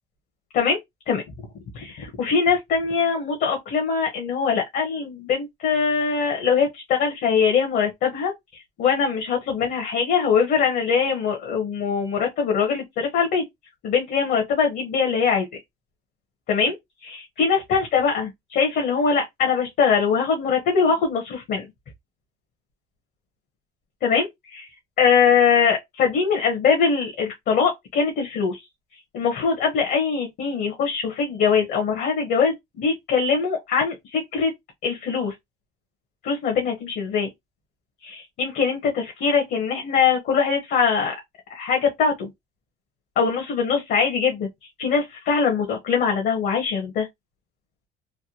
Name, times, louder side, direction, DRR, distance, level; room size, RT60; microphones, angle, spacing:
voice 1, 1.7-13.4 13.8-15.6 16.5-16.7 17.0-21.7 24.0-24.7 25.0-28.6 29.1-34.5 34.8-35.3 36.2-37.3 38.0-41.1 41.5-42.3 43.2-44.5 44.8-47.1, left 6 dB, 65° left, 1.1 m, -22 dB
3.3 x 2.2 x 2.8 m
cardioid pair, 110°, 17 cm